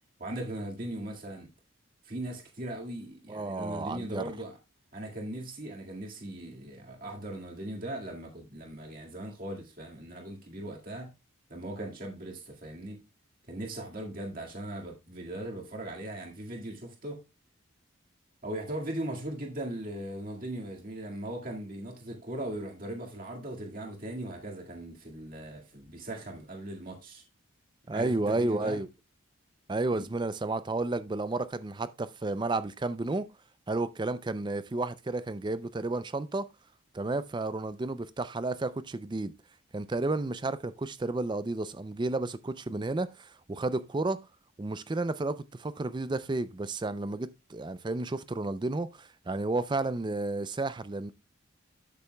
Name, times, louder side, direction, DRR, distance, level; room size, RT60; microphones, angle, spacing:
voice 1, 0.2-1.5 2.0-4.6 4.9-11.1 11.5-13.0 13.5-17.3 18.4-27.2 27.9-28.8 29.9-30.0, right 1 dB, 40° right, 1.9 m, -39 dB
voice 2, 3.3-4.2 27.9-28.9 29.7-33.3 33.7-36.5 36.9-39.3 39.7-44.3 44.6-51.1, right 2 dB, 20° right, 0.4 m, -32 dB
12.5 x 6.8 x 2.2 m
head